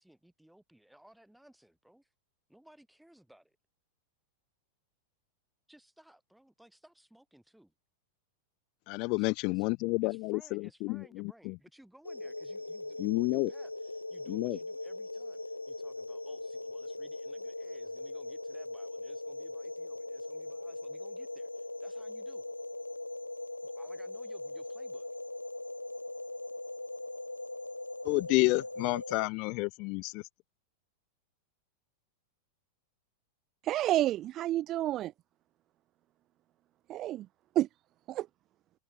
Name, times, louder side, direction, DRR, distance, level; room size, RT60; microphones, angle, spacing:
voice 1, 0.0-2.1 2.5-3.6 5.7-7.7 9.1-9.7 10.0-22.5 23.6-25.1, right 1 dB, ahead, 4.7 m, -60 dB
voice 2, 8.9-11.5 13.0-13.5 14.3-14.6 28.0-30.2, left 29 dB, 45° left, 0.4 m, -30 dB
sound 1, 12.0-29.3, left 2 dB, 85° left, 0.9 m, -40 dB
voice 3, 33.6-35.1 36.9-37.3 37.6-37.7 38.1-38.3, right 14 dB, 35° right, 0.3 m, -29 dB
figure-of-eight pair, 90°, 0 cm